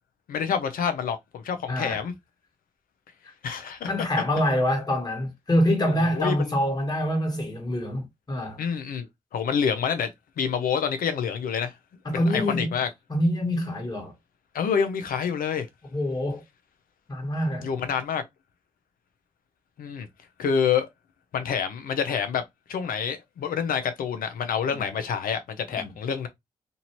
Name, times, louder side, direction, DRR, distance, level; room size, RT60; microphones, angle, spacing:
voice 1, 0.3-2.1 3.4-4.1 6.1-6.5 8.6-9.1 9.3-11.7 12.1-12.9 14.5-15.7 17.6-18.2 19.8-20.1 20.4-20.9 21.3-22.4 22.7-26.3, left 7 dB, 70° left, 0.7 m, -27 dB
voice 2, 1.7-2.0 3.9-8.6 12.1-12.7 13.1-14.1 15.9-16.4 17.1-17.7 24.7-24.9 25.7-25.9, equal, 25° left, 1.6 m, -26 dB
2.7 x 2.6 x 2.9 m
supercardioid pair, 45°, 15 cm